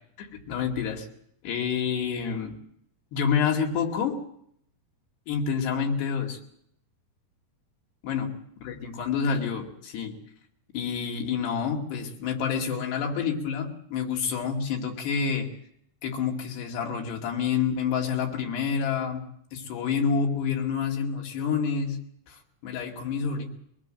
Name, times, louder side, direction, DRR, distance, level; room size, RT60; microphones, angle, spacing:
voice 1, 0.2-1.1 1.4-2.6 3.1-4.2 5.3-6.4 8.0-10.2 10.7-15.5 16.0-19.2 19.5-22.0 22.3-23.5, left 6 dB, 90° left, 1 dB, 4.3 m, -28 dB
23.0 x 19.0 x 7.6 m, 0.72 s
omnidirectional pair, 4.6 m